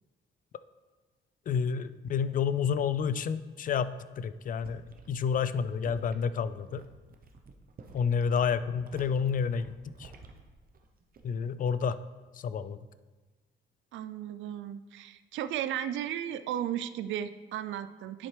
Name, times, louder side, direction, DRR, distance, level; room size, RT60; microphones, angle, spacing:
voice 1, 1.5-4.8 5.1-6.8 7.9-9.7 10.0-10.1 11.2-12.0 12.4-12.8, left 6 dB, 45° left, 14 dB, 0.4 m, -29 dB
sound 1, 4.5-11.5 11.8-12.2, right 4 dB, 45° right, 0.8 m, -53 dB
voice 2, 13.9-18.3, right 10 dB, 75° right, 12 dB, 0.4 m, -35 dB
11.0 x 4.4 x 3.3 m, 1.3 s
cardioid pair, 90°, 20 cm